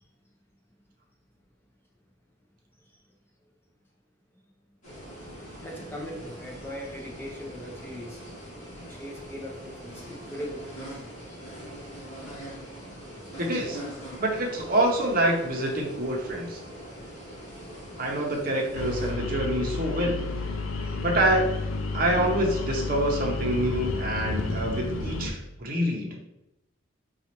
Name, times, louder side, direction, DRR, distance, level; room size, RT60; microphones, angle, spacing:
sound 1, 4.8-19.1, equal, 40° left, 1.5 m, -42 dB
voice 1, 5.6-8.2 8.8-10.6 11.3-11.4 16.2-16.3 20.8-20.9, equal, 10° left, -2 dB, 0.6 m, -39 dB
voice 2, 13.4-13.8 14.2-16.6 18.0-20.2 21.0-21.5 21.9-26.1, right 1 dB, 45° right, 0 dB, 0.7 m, -26 dB
sound 2, 18.7-25.3, left 3 dB, 85° left, 0.4 m, -31 dB
4.0 x 2.3 x 3.0 m, 0.88 s
head